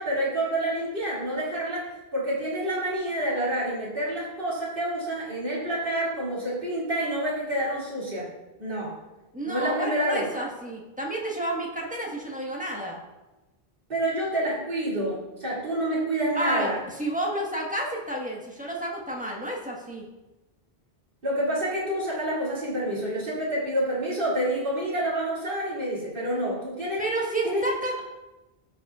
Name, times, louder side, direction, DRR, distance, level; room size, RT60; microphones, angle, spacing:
voice 1, 0.0-1.8 2.1-8.3 8.6-9.0 9.4-10.3 13.9-16.8 21.2-27.0 27.4-27.6, right 1 dB, 55° right, -8 dB, 2.8 m, -28 dB
voice 2, 9.3-13.0 16.3-20.0 27.0-28.0, right 1 dB, 10° right, -3 dB, 1.4 m, -30 dB
15.0 x 5.5 x 2.4 m, 1.1 s
omnidirectional pair, 1.1 m